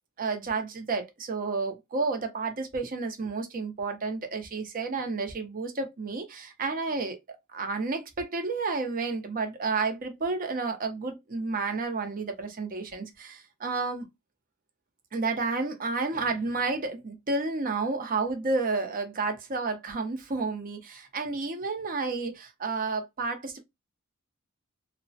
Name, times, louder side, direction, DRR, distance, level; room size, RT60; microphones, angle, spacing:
voice 1, 0.2-14.0 15.1-23.6, right 3 dB, 40° right, 0.6 m, -31 dB
2.9 x 2.1 x 2.7 m
head